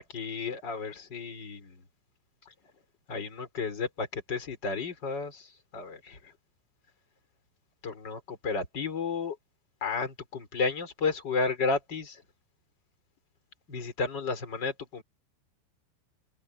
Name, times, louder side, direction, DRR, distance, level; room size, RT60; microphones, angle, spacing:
voice 1, 0.0-1.8 3.1-6.2 7.8-9.4 9.8-12.2 13.7-15.0, left 4 dB, 20° left, 4.6 m, -32 dB
omnidirectional pair, 5.7 m